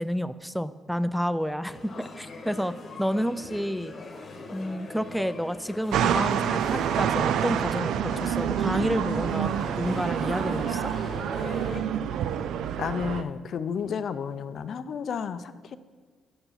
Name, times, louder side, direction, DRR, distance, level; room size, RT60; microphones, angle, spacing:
voice 1, 0.0-2.7 3.0-3.9 4.5-9.5 9.8-10.9, equal, ahead, 14 dB, 0.4 m, -30 dB
sound 1, 1.7-11.8, left 3 dB, 45° left, 1.0 m, -41 dB
sound 2, 5.9-13.2, right 9 dB, 80° right, 0.4 m, -27 dB
voice 2, 12.8-15.8, left 6 dB, 60° left, 13 dB, 0.4 m, -32 dB
6.9 x 6.6 x 5.7 m, 1.5 s
cardioid pair, 90°, 0 cm